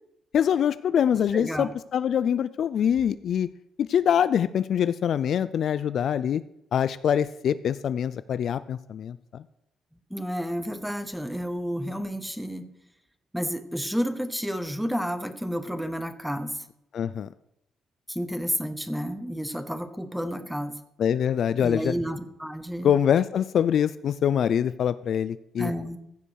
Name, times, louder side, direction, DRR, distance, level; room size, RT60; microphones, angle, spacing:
voice 1, 0.3-3.5 3.8-6.4 6.7-9.4 16.9-17.3 21.0-21.9 22.8-25.7, left 9 dB, 50° left, 15 dB, 0.3 m, -24 dB
voice 2, 1.3-1.7 10.1-12.7 13.3-16.7 18.1-20.8 21.6-22.9 25.6-26.0, equal, ahead, 11 dB, 0.8 m, -31 dB
15.5 x 5.4 x 6.3 m, 0.80 s
cardioid pair, 160°, 0 cm